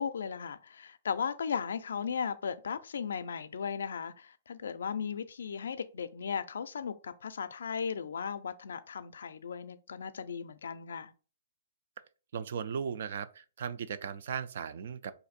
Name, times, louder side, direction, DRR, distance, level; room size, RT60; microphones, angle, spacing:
voice 1, 0.0-11.1, left 6 dB, 85° left, 0.4 m, -36 dB
voice 2, 12.3-15.1, right 7 dB, 60° right, 0.3 m, -37 dB
2.6 x 2.5 x 4.1 m
hypercardioid pair, 155°, 0 cm